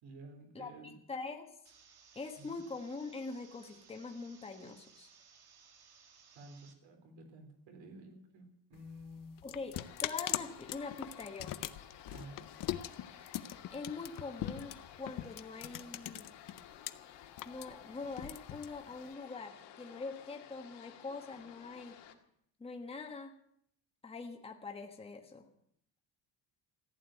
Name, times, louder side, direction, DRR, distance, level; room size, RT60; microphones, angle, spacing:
voice 1, 0.0-1.0 2.4-2.6 6.3-9.5 12.1-12.5, right 1 dB, 75° right, 5 dB, 4.1 m, -52 dB
voice 2, 1.1-1.5 2.1-5.1 9.4-11.6 13.7-16.3 17.4-22.0 22.6-23.3 24.0-25.4, left 4 dB, 15° left, 3 dB, 1.3 m, -43 dB
sound 1, 1.6-6.7, right 6 dB, 55° right, 2.2 m, -61 dB
sound 2, 8.7-16.9 17.2-19.1, left 13 dB, 45° left, 0.7 m, -41 dB
sound 3, 9.7-22.1, left 10 dB, 65° left, 2.0 m, -54 dB
15.0 x 9.2 x 9.1 m, 0.71 s
cardioid pair, 170°, 46 cm